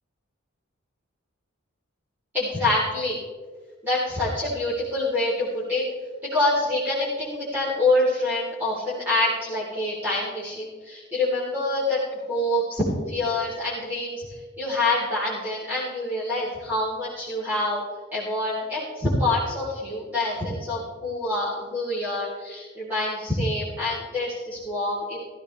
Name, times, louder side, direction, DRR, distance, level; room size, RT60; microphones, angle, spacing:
voice 1, 2.3-3.2 3.8-5.8 6.2-12.0 12.3-14.2 14.6-17.8 18.1-25.2, left 2 dB, 10° right, -9 dB, 3.7 m, -26 dB
16.0 x 15.0 x 3.4 m, 1.5 s
head